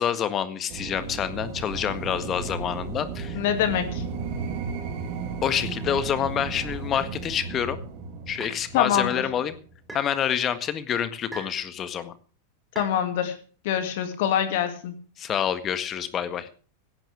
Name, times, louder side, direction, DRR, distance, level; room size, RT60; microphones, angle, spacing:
voice 1, 0.0-3.4 5.4-7.8 8.3-9.6 9.9-12.1 15.2-16.5, left 9 dB, 30° left, 12 dB, 1.6 m, -27 dB
sound 1, 0.7-9.8, right 5 dB, 45° right, 3.3 m, -35 dB
voice 2, 3.3-4.0 8.7-9.2 12.8-13.3 13.6-14.9, left 9 dB, 50° left, 8 dB, 2.6 m, -24 dB
sound 2, 6.9-7.1 8.4-8.7 9.9-10.1 11.3-11.6 12.7-13.0, right 1 dB, 10° right, 7.1 m, -39 dB
17.0 x 15.5 x 3.5 m, 0.41 s
figure-of-eight pair, 90°, 0 cm